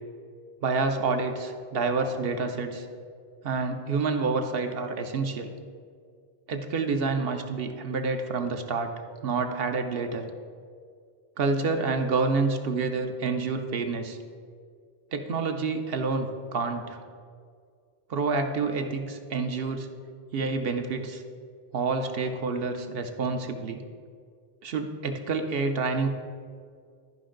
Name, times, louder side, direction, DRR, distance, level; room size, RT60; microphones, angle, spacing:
voice 1, 0.6-2.9 3.4-5.5 6.5-8.9 9.2-10.3 11.4-14.2 15.1-17.0 18.1-19.9 20.3-21.2 21.7-23.8 24.6-26.1, right 4 dB, 65° right, 6 dB, 0.9 m, -28 dB
12.5 x 5.2 x 3.8 m, 2.1 s
omnidirectional pair, 1.1 m